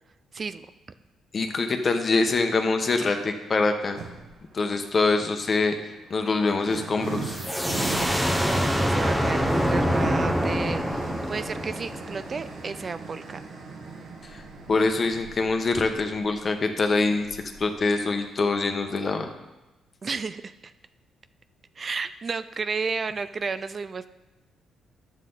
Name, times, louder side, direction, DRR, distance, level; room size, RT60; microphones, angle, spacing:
voice 1, 0.3-0.7 8.2-13.4 20.0-20.7 21.8-24.1, right 5 dB, 40° right, 12 dB, 0.4 m, -32 dB
voice 2, 1.3-4.0 4.5-5.7 6.1-7.4 14.2-14.4 14.7-19.3, left 3 dB, 40° left, 6 dB, 1.1 m, -24 dB
sound 1, 4.0-4.4 5.4-18.9, right 4 dB, 65° right, 1.5 m, -39 dB
sound 2, 7.3-12.8, equal, 5° right, 1.0 m, -25 dB
11.0 x 7.3 x 4.0 m, 1.1 s
cardioid pair, 90°, 0 cm